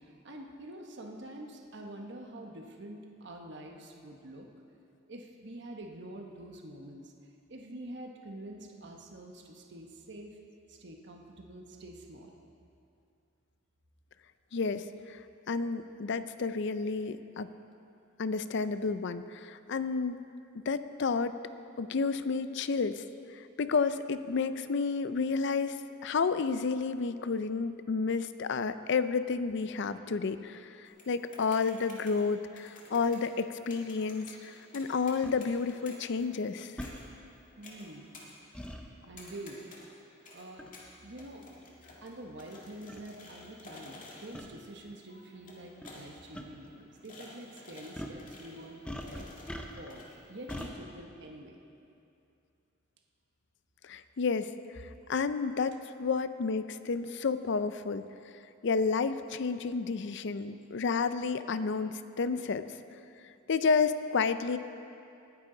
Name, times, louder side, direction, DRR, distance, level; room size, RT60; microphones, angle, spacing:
voice 1, 0.0-4.5 5.1-7.1 7.5-10.4 10.7-12.3 37.6-38.1 39.0-39.6 40.3-40.7 41.0-41.5 42.0-49.3 49.7-51.6, right 1 dB, 60° right, 2 dB, 1.1 m, -46 dB
voice 2, 14.5-15.2 15.5-17.5 18.2-20.2 20.7-21.4 21.8-23.0 23.3-25.8 26.0-36.7 53.8-54.5 55.1-58.0 58.6-62.7 63.5-64.6, left 4 dB, 60° left, 12 dB, 0.5 m, -31 dB
sound 1, 30.9-50.6, left 2 dB, 40° left, 2.1 m, -53 dB
sound 2, 35.2-35.4 36.8-37.0 38.5-38.8 40.6-40.8 41.6-41.7 42.5-42.6 42.9-43.0 44.3-44.5 45.8-46.0 46.3-46.4 47.9-48.2 48.8-50.0 50.5-50.7, equal, 5° left, 0.7 m, -41 dB
19.5 x 9.7 x 3.9 m, 2.6 s
head